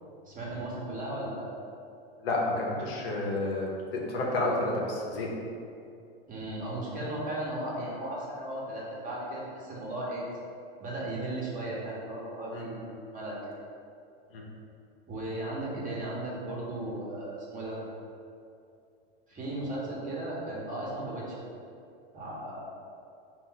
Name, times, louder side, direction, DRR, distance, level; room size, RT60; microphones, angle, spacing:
voice 1, 0.3-1.5 6.3-10.2 10.8-12.8 13.1-13.6 15.1-17.8 19.3-21.4 22.1-22.7, right 1 dB, 25° right, -6 dB, 1.3 m, -36 dB
voice 2, 2.2-5.3 12.5-12.6 14.3-14.4, left 2 dB, 70° left, -2 dB, 0.9 m, -30 dB
4.2 x 2.7 x 3.9 m, 2.5 s
hypercardioid pair, 110°, 30 cm